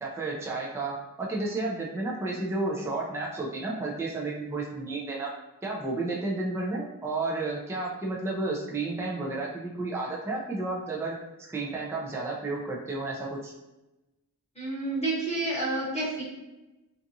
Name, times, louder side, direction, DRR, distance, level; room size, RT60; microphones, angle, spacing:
voice 1, 0.0-5.3 5.6-11.2 11.5-13.5, right 2 dB, 5° right, -3 dB, 0.4 m, -32 dB
voice 2, 14.5-16.2, right 2 dB, 15° left, -7 dB, 1.0 m, -29 dB
2.6 x 2.4 x 2.6 m, 1.0 s
wide cardioid pair, 75°, 37 cm